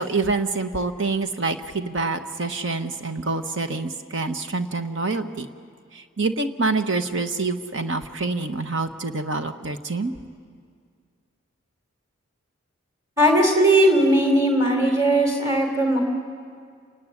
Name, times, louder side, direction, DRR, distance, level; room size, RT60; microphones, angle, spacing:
voice 1, 0.0-5.5 5.9-10.1, right 3 dB, 55° right, 8 dB, 1.2 m, -26 dB
voice 2, 13.2-16.0, right 1 dB, 15° right, 3 dB, 3.9 m, -18 dB
29.5 x 18.5 x 9.9 m, 2.1 s
head